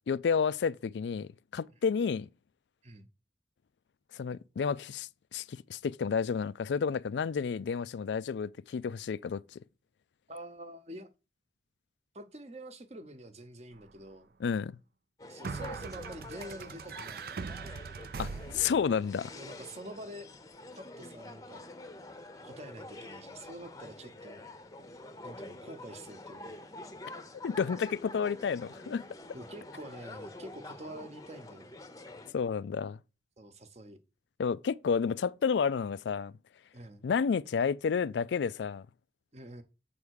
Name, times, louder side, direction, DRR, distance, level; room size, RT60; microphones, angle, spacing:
voice 1, 0.1-2.3 4.1-9.6 14.4-14.8 18.2-19.3 27.4-29.0 32.3-33.0 34.4-36.3 37.0-38.9, left 6 dB, 85° left, 0.4 m, -31 dB
voice 2, 10.3-11.1 12.1-14.3 15.3-17.4 19.3-20.3 20.8-21.7 22.4-24.4 25.2-26.6 29.3-31.8 33.4-34.0 36.7-37.1 39.3-39.6, right 1 dB, 35° right, 0.9 m, -47 dB
sound 1, 13.7-13.8 15.4-19.0, right 5 dB, 55° right, 0.4 m, -41 dB
sound 2, 15.2-32.3, left 2 dB, 20° left, 0.7 m, -47 dB
7.8 x 3.5 x 6.4 m
head